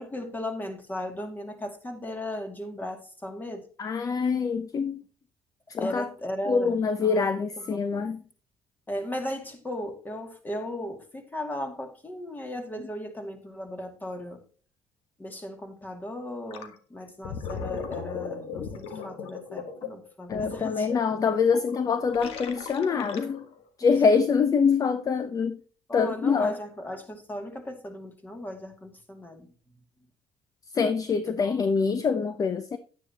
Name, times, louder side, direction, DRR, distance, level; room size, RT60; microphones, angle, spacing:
voice 1, 0.0-3.6 5.8-8.1 8.9-14.4 15.2-20.9 23.8-23.9 25.9-29.5 31.2-31.7, left 1 dB, 20° left, 5 dB, 2.4 m, -37 dB
voice 2, 3.8-5.0 5.7-6.1 6.5-8.2 20.3-23.5 23.8-25.6 25.9-26.6 30.7-32.8, left 5 dB, 35° left, 11 dB, 0.7 m, -25 dB
Gurgling, 16.5-16.7 17.1-23.6, left 6 dB, 75° left, 1.5 m, -38 dB
10.0 x 9.6 x 2.9 m, 0.39 s
cardioid pair, 95°, 10 cm